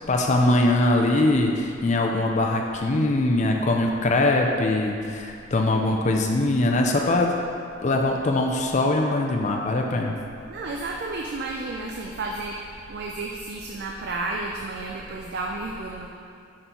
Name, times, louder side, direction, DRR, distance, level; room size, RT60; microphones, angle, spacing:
voice 1, 0.1-7.3 7.8-10.1, left 2 dB, 40° left, 1 dB, 0.4 m, -22 dB
voice 2, 5.6-5.9 10.2-16.1, right 2 dB, 55° right, 0 dB, 0.4 m, -32 dB
5.2 x 4.3 x 4.3 m, 2.5 s
head